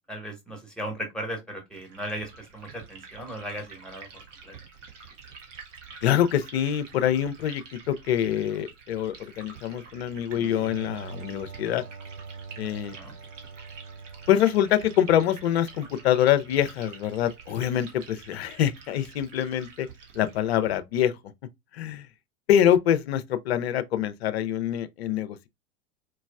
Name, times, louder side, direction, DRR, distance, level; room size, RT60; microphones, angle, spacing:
voice 1, 0.0-4.5 12.8-13.1, equal, ahead, 1.3 m, -37 dB
Liquid, 1.7-20.8, right 5 dB, 60° right, 1.7 m, -48 dB
voice 2, 6.0-11.8 12.6-13.0 14.3-19.9 20.2-21.1 21.7-22.1 22.5-25.4, left 10 dB, 50° left, 0.6 m, -25 dB
sound 1, 10.3-17.8, right 5 dB, 35° right, 0.6 m, -44 dB
4.6 x 3.0 x 2.3 m
figure-of-eight pair, 95°, 42 cm